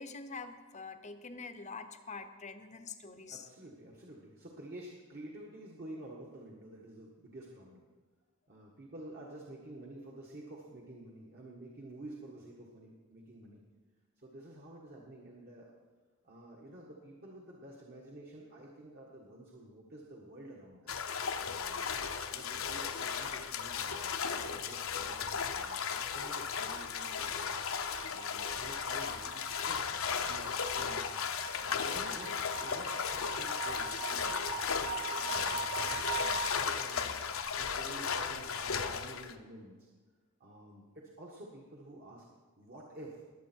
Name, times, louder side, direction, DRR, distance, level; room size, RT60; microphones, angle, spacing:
voice 1, 0.0-3.5 31.5-31.7, left 4 dB, 30° left, 9 dB, 0.8 m, -45 dB
voice 2, 3.3-7.8 8.5-13.6 14.2-15.7 16.2-21.0 21.6-21.9 22.3-27.5 27.8-31.1 31.6-37.1 37.6-39.8 40.4-42.2 42.6-43.2, right 1 dB, 45° right, -2 dB, 1.7 m, -50 dB
sound 1, 20.9-39.3, left 6 dB, 65° left, 0.8 m, -35 dB
sound 2, 26.5-36.5, right 8 dB, 20° right, 0.7 m, -43 dB
20.5 x 7.9 x 4.6 m, 1.5 s
head